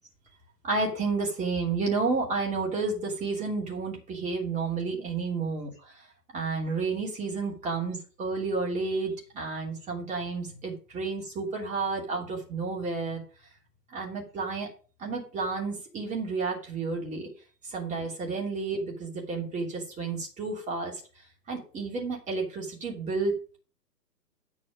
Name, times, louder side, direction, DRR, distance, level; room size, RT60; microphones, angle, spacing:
voice 1, 0.6-5.7 6.3-13.2 13.9-14.7 15.0-17.3 17.7-21.0 21.5-23.3, right 4 dB, 15° right, -1 dB, 2.9 m, -31 dB
9.4 x 6.5 x 5.0 m, 0.37 s
hypercardioid pair, 135°, 49 cm